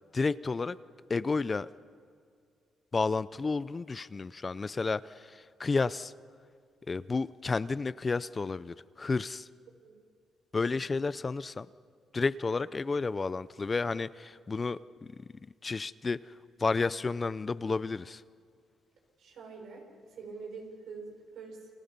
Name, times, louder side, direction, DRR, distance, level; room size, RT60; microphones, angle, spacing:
voice 1, 0.1-0.8 1.1-1.7 2.9-6.1 6.9-9.5 10.5-11.7 12.1-15.2 15.6-16.3 16.6-18.2, left 4 dB, 30° left, 17 dB, 0.5 m, -31 dB
voice 2, 19.2-19.8 20.1-21.7, right 4 dB, 75° right, 1 dB, 6.3 m, -45 dB
29.5 x 24.5 x 5.4 m, 2.1 s
cardioid pair, 90°, 0 cm